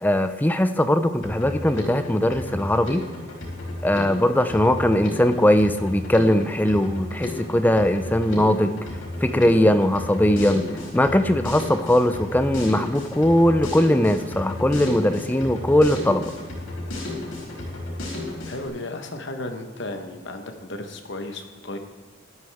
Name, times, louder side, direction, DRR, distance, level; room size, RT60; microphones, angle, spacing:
voice 1, 0.0-3.0 3.8-8.8 9.2-10.7 10.9-16.3, left 1 dB, 10° left, 9 dB, 0.5 m, -20 dB
Drum kit, 1.2-18.7, left 1 dB, 80° left, 4.2 m, -33 dB
voice 2, 18.5-21.8, left 2 dB, 60° left, 5 dB, 1.2 m, -34 dB
14.0 x 11.0 x 3.5 m, 1.3 s
head